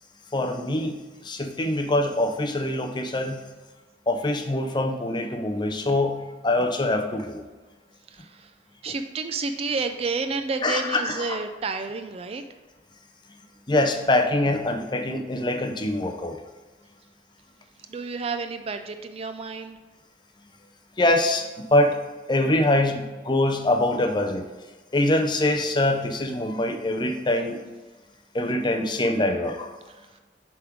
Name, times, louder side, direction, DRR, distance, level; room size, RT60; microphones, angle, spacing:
voice 1, 0.3-1.0 1.2-3.5 4.1-7.4 10.6-11.4 13.7-16.4 21.0-22.0 22.3-24.4 24.9-27.6 28.3-29.7, left 1 dB, 25° left, 4 dB, 0.6 m, -24 dB
voice 2, 8.1-8.5 8.8-12.4 17.9-19.8 29.9-30.2, right 4 dB, 35° right, 8 dB, 0.3 m, -30 dB
7.3 x 3.6 x 4.6 m, 1.2 s
head